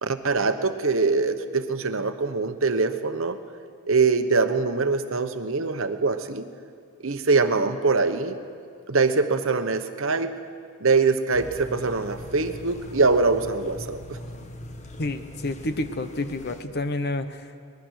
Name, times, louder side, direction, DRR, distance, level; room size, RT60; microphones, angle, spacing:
voice 1, 0.0-3.4 3.9-6.4 7.0-8.3 8.9-10.3 10.8-14.2, right 4 dB, 65° right, 9 dB, 1.0 m, -23 dB
sound 1, 11.3-16.6, left 1 dB, 35° left, 1.3 m, -41 dB
voice 2, 15.0-17.6, left 2 dB, 50° left, 10 dB, 1.0 m, -29 dB
24.0 x 20.0 x 6.5 m, 2.3 s
head